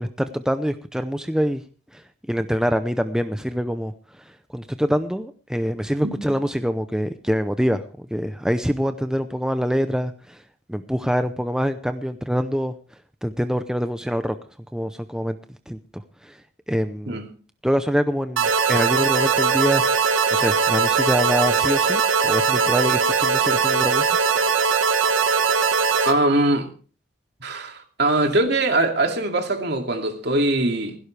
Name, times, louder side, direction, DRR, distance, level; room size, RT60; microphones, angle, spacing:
voice 1, 0.0-1.6 1.9-4.2 4.5-7.8 8.1-10.4 10.7-12.7 13.2-14.4 14.7-15.4 15.7-15.8 16.2-16.4 16.7-17.2 17.6-19.8 20.3-24.5, equal, 5° right, 0.6 m, -25 dB
sound 1, 18.4-26.1, right 6 dB, 85° right, 1.5 m, -20 dB
voice 2, 26.0-26.7 27.4-31.0, right 2 dB, 55° right, 2.5 m, -22 dB
17.0 x 16.0 x 3.3 m
head